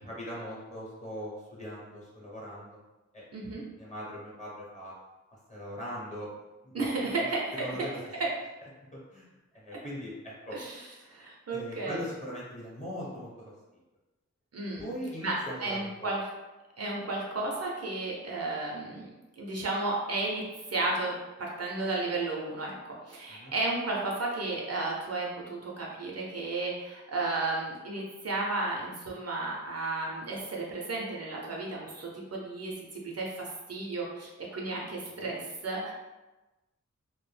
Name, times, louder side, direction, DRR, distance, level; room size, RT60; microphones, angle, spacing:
voice 1, 0.0-2.8 3.1-3.2 3.8-4.9 5.5-6.3 6.6-7.2 7.6-7.9 8.9-9.3 9.5-10.6 11.5-13.5 14.8-16.1 23.3-23.5 35.2-35.3, equal, 25° left, -6 dB, 0.9 m, -40 dB
voice 2, 3.3-3.6 6.7-7.5 10.5-12.0 14.5-14.9 15.2-16.3 16.8-19.1 19.4-21.1 21.4-35.9, right 2 dB, 55° right, -2 dB, 0.6 m, -33 dB
2.3 x 2.1 x 3.1 m, 1.1 s
wide cardioid pair, 85°, 30 cm